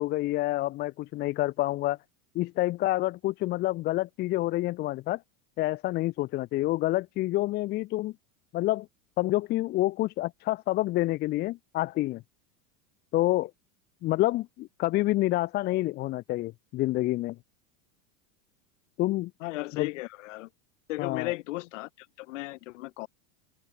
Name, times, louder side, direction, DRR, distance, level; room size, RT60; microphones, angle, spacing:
voice 1, 0.0-2.0 2.3-5.2 5.6-8.1 8.5-8.9 9.2-12.2 13.1-13.5 14.0-17.4 19.0-19.3 19.8-19.9 21.0-21.3, left 17 dB, 25° left, 0.8 m, -28 dB
voice 2, 19.4-20.5 20.9-23.1, left 20 dB, 60° left, 5.5 m, -35 dB
supercardioid pair, 175°, 42 cm